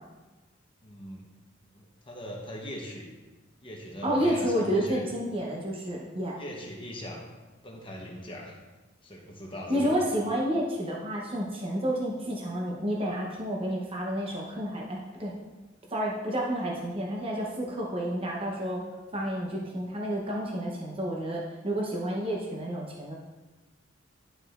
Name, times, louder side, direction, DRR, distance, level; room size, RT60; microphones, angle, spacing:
voice 1, 0.8-1.2 1.7-3.1 3.6-5.0 6.4-7.3 7.6-8.5 9.0-10.0, equal, 25° left, -1 dB, 0.9 m, -40 dB
voice 2, 4.0-6.4 9.7-15.3 15.9-18.8 19.1-23.1, equal, 30° right, -2 dB, 0.9 m, -30 dB
11.0 x 4.9 x 2.5 m, 1.2 s
head